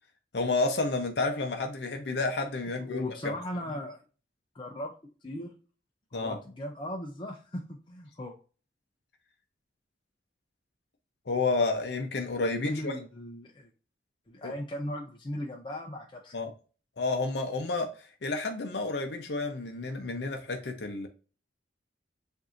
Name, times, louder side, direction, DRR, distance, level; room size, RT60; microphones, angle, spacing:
voice 1, 0.3-3.3 6.1-6.4 11.3-12.9 14.4-14.5 16.3-16.5 17.0-21.1, left 3 dB, 65° left, 0.7 m, -30 dB
voice 2, 2.7-4.0 4.5-4.9 5.2-5.6 6.1-8.3 12.6-13.7 14.3-16.4, left 1 dB, 25° left, 0.5 m, -37 dB
7.5 x 2.7 x 2.5 m
head